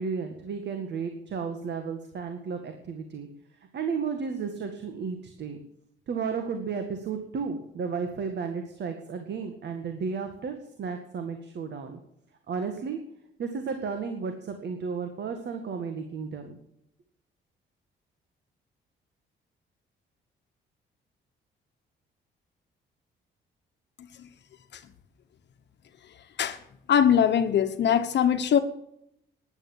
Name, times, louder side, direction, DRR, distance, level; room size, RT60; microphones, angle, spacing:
voice 1, 0.0-3.3 3.7-5.6 6.1-12.0 12.5-13.0 13.4-16.6, right 5 dB, 60° right, 6 dB, 2.0 m, -33 dB
voice 2, 26.9-28.6, left 8 dB, 60° left, 8 dB, 1.2 m, -21 dB
13.0 x 10.5 x 7.4 m, 0.77 s
cardioid pair, 90°, 20 cm